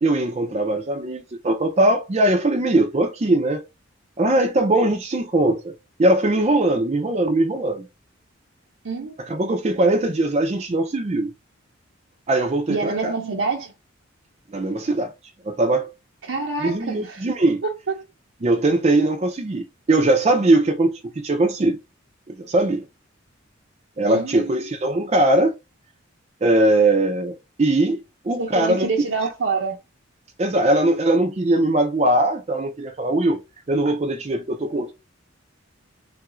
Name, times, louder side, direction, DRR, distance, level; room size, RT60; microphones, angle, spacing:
voice 1, 0.0-3.6 4.2-5.7 6.0-7.9 9.3-11.3 12.3-13.1 14.5-15.1 15.4-15.9 16.6-17.6 18.4-21.8 22.3-22.8 24.0-25.5 26.4-28.9 30.4-33.4 33.7-34.9, right 2 dB, 30° right, 0.4 m, -20 dB
voice 2, 12.7-13.7 16.2-17.3 17.6-18.0 24.1-24.6 28.4-29.8, right 4 dB, 75° right, 0.6 m, -26 dB
3.4 x 2.4 x 3.0 m
head